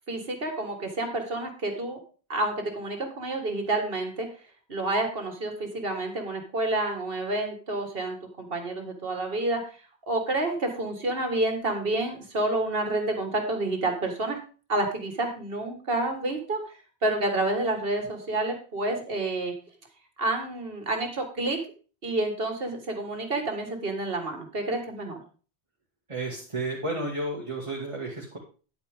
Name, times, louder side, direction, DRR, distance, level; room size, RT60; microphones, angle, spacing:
voice 1, 0.1-2.0 2.3-4.3 4.7-9.6 10.1-14.4 14.7-16.8 17.0-19.5 20.2-21.6 22.0-25.2, right 2 dB, 65° right, 4 dB, 2.0 m, -29 dB
voice 2, 26.1-28.4, right 2 dB, 30° right, -4 dB, 2.0 m, -32 dB
10.0 x 8.4 x 3.6 m, 0.37 s
omnidirectional pair, 1.0 m